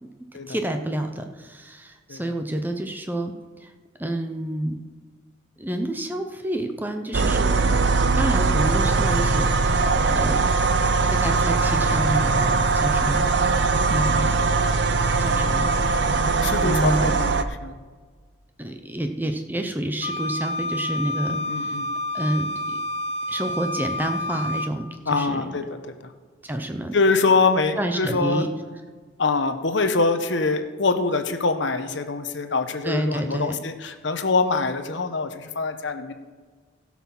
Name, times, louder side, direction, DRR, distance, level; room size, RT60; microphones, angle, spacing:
voice 1, 0.5-3.7 4.0-4.8 5.6-7.7 8.1-10.4 11.1-13.3 13.9-14.4 15.2-16.2 16.6-17.2 18.6-21.8 22.1-22.8 23.3-25.5 26.4-27.0 27.8-28.5 32.8-33.5, right 1 dB, 10° right, 5 dB, 0.7 m, -29 dB
sound 1, 7.1-17.4, right 4 dB, 55° right, 0.6 m, -21 dB
voice 2, 16.4-17.8 21.3-21.9 25.1-26.1 26.9-28.5 29.2-36.1, left 3 dB, 60° left, 8 dB, 1.0 m, -24 dB
Wind instrument woodwind instrument, 20.0-24.7, left 1 dB, 30° left, 0.4 m, -29 dB
16.5 x 6.0 x 6.0 m, 1.5 s
head